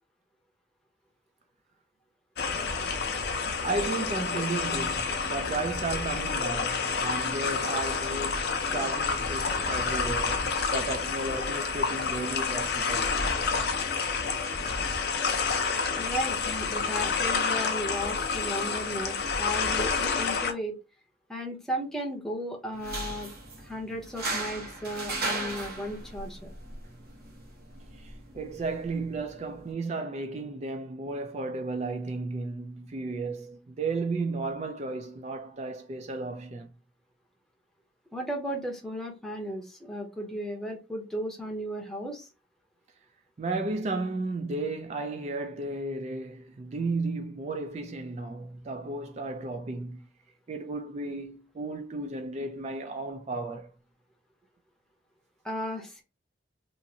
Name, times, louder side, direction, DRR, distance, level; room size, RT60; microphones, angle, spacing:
sound 1, 2.4-20.5, left 5 dB, 55° left, 0.5 m, -29 dB
voice 1, 3.6-13.1 27.9-36.7 43.4-50.1 50.5-53.7, right 3 dB, 35° right, 0.3 m, -34 dB
voice 2, 16.0-20.7 21.3-23.3 23.6-26.5 38.1-42.3 55.4-56.0, equal, 5° left, 0.7 m, -35 dB
sound 2, 22.7-29.7, right 2 dB, 50° right, 1.1 m, -37 dB
2.9 x 2.5 x 2.7 m
head